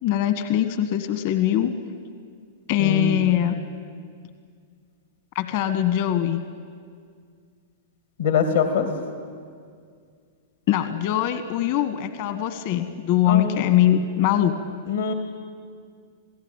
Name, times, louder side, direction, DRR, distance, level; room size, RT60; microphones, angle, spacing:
voice 1, 0.0-1.7 2.7-3.6 5.3-6.4 10.7-14.7, left 11 dB, 55° left, 10 dB, 1.4 m, -22 dB
voice 2, 2.8-3.3 8.2-8.9 13.3-13.6 14.9-15.1, left 7 dB, 80° left, 6 dB, 2.6 m, -23 dB
27.5 x 17.5 x 8.9 m, 2.1 s
hypercardioid pair, 115°, 0 cm